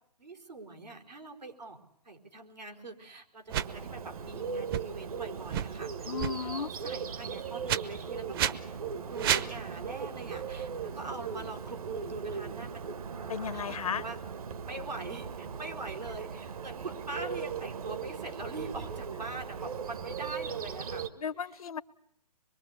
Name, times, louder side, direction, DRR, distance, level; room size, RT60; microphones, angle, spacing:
voice 1, 0.2-1.8 2.0-6.1 6.4-8.5 9.1-13.0 13.5-14.2 14.7-21.1, right 3 dB, 90° right, 2 dB, 4.7 m, -43 dB
sound 1, 3.5-3.7 4.7-4.8 5.4-5.7 6.2-6.3 7.7-7.8 8.3-8.5 9.2-9.5, right 10 dB, 35° right, 1.0 m, -29 dB
Bird, 3.5-21.1, right 6 dB, 60° right, 1.7 m, -38 dB
voice 2, 6.1-6.7 13.3-14.0 21.2-21.8, left 7 dB, 60° left, 17 dB, 1.0 m, -34 dB
25.5 x 22.5 x 8.2 m, 0.71 s
figure-of-eight pair, 135°, 21 cm